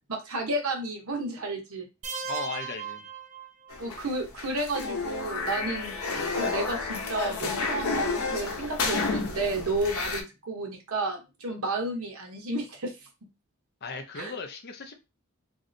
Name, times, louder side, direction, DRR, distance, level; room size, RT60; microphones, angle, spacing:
voice 1, 0.1-1.9 3.8-6.0 6.3-12.9 14.1-14.3, right 2 dB, 85° right, 1.0 m, -32 dB
sound 1, 2.0-4.0, right 6 dB, 35° right, 0.4 m, -37 dB
voice 2, 2.2-3.1 13.8-14.9, left 4 dB, 50° left, 0.6 m, -37 dB
sound 2, 3.7-10.2, left 3 dB, 85° left, 0.7 m, -31 dB
3.1 x 2.7 x 2.6 m
head